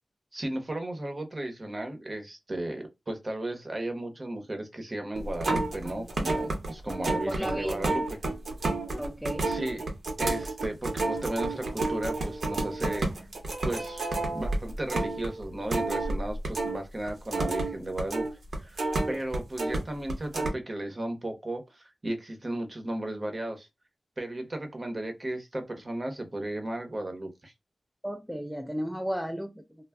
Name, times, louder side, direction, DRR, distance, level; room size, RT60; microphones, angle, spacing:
voice 1, 0.3-8.0 9.4-9.8 10.2-13.3 13.6-18.3 18.6-23.7 24.2-27.5, right 1 dB, 35° right, 0.8 m, -35 dB
sound 1, 5.2-16.8 17.1-19.8 20.1-20.5, right 2 dB, 75° right, 0.9 m, -30 dB
voice 2, 7.3-7.9 9.0-9.5 28.0-29.6, equal, 5° right, 0.4 m, -34 dB
2.2 x 2.1 x 3.4 m
cardioid pair, 55°, 0 cm